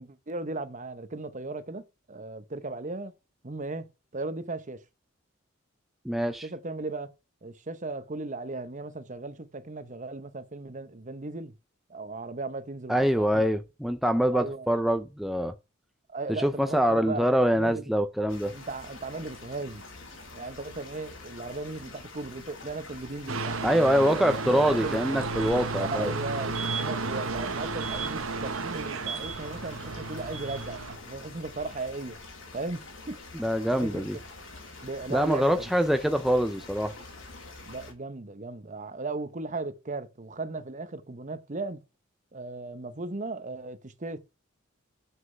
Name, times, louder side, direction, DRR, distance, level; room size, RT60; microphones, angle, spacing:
voice 1, 0.0-3.1 3.4-3.9 4.1-4.8 6.4-7.1 7.4-11.5 11.9-13.5 14.3-14.7 16.1-17.8 18.5-19.8 20.3-23.6 24.0-25.0 25.8-26.5 26.8-32.2 32.5-32.8 33.1-33.2 33.8-34.1 34.8-35.5 37.6-41.8 42.3-44.2, right 3 dB, 35° right, 0.9 m, -36 dB
voice 2, 6.0-6.5 12.9-15.5 16.4-18.5 23.6-26.1 33.3-34.2 35.1-36.9, equal, ahead, 0.5 m, -24 dB
sound 1, 18.3-37.9, left 3 dB, 65° left, 3.1 m, -46 dB
sound 2, 23.3-31.0, right 4 dB, 75° right, 0.9 m, -33 dB
7.5 x 6.5 x 6.6 m
head